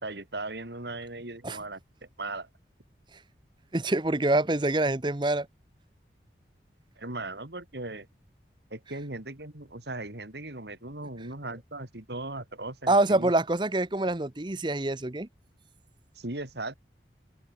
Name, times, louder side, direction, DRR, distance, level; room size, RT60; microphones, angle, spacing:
voice 1, 0.0-2.5 7.0-8.1 8.7-13.3 16.1-16.8, right 2 dB, 70° right, 3.3 m, -38 dB
voice 2, 3.7-5.5 12.9-15.3, right 2 dB, 25° right, 0.9 m, -25 dB
head